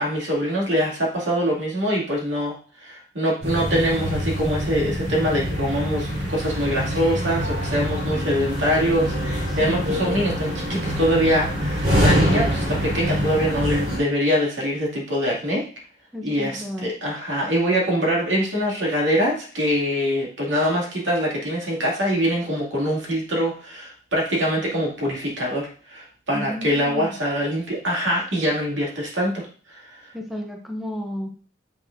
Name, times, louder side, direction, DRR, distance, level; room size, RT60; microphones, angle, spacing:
voice 1, 0.0-15.7 16.2-29.4 29.7-30.0, equal, 90° right, -3 dB, 2.5 m, -24 dB
sound 1, 3.4-14.0, equal, 55° right, 3.7 m, -25 dB
voice 2, 9.5-9.9 16.1-16.9 26.3-27.1 30.1-31.3, equal, ahead, 2 dB, 0.7 m, -32 dB
7.4 x 6.0 x 2.7 m, 0.42 s
head